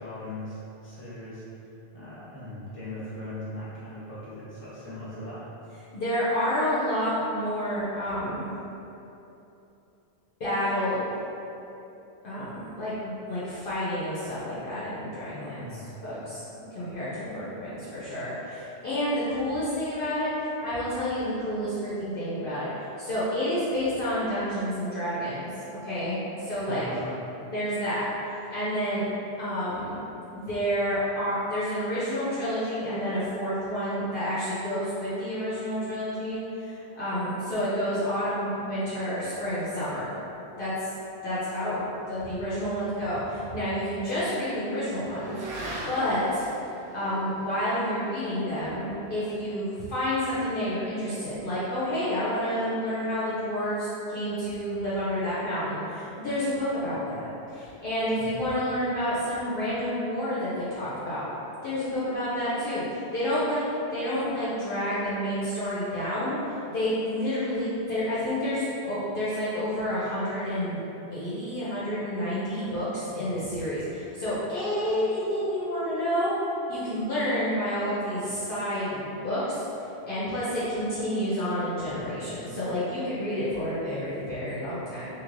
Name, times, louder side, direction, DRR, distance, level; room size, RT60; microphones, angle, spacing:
voice 1, 0.0-1.4 1.9-5.4 15.3-16.0 26.5-27.2 73.1-73.3, left 1 dB, 10° left, -11 dB, 0.9 m, -39 dB
voice 2, 5.9-8.5 10.4-11.0 12.2-15.6 16.0-16.4 16.7-20.3 20.6-22.7 23.0-25.5 25.8-26.9 27.5-28.0 28.5-29.0 29.4-30.0 30.3-40.1 40.6-40.9 41.2-45.6 45.9-46.5 46.9-61.2 61.6-63.6 63.9-66.4 66.7-70.8 71.1-76.3 76.7-79.7 80.0-85.1, equal, 60° left, -11 dB, 0.8 m, -29 dB
Motorcycle / Accelerating revving vroom, 42.8-51.3, right 1 dB, 75° right, 0.8 m, -44 dB
3.1 x 2.8 x 2.5 m, 2.9 s
omnidirectional pair, 1.1 m